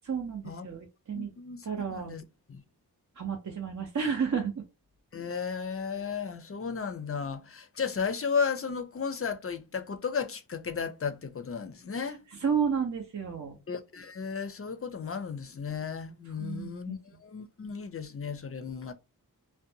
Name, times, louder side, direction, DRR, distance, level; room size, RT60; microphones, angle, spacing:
voice 1, 0.1-1.3 1.6-2.1 3.2-4.6 12.4-13.6 16.4-17.0, right 6 dB, 45° right, 0.6 m, -31 dB
voice 2, 1.1-2.2 2.5-2.6 5.1-12.2 13.7-18.9, left 6 dB, 35° left, 0.4 m, -34 dB
2.5 x 2.2 x 2.6 m
cardioid pair, 45°, 39 cm